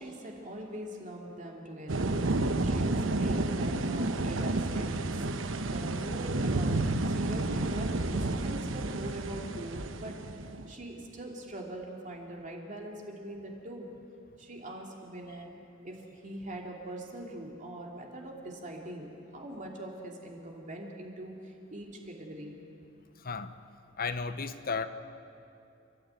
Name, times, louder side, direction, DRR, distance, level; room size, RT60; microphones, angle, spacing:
voice 1, 0.0-10.1 10.7-13.9 14.4-15.5 15.8-22.6, right 1 dB, 40° right, 0 dB, 2.8 m, -42 dB
sound 1, 1.9-10.7, right 2 dB, 70° right, 1.0 m, -30 dB
voice 2, 24.0-24.9, left 5 dB, 45° left, 12 dB, 0.9 m, -33 dB
30.0 x 13.5 x 9.2 m, 2.6 s
head